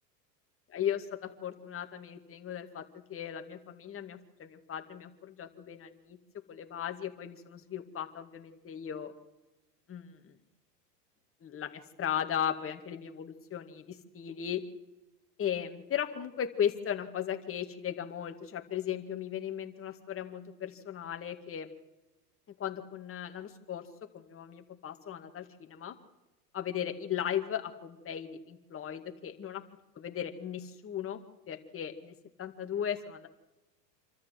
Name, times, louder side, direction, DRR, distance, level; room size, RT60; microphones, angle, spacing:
voice 1, 0.7-6.2 6.5-9.1 9.9-10.3 11.4-14.6 15.4-21.7 22.6-23.9 24.1-26.0 26.5-29.6 30.0-31.2 31.5-33.3, left 9 dB, 25° left, 5 dB, 2.1 m, -37 dB
26.5 x 13.5 x 7.6 m, 1.0 s
hypercardioid pair, 100°, 50 cm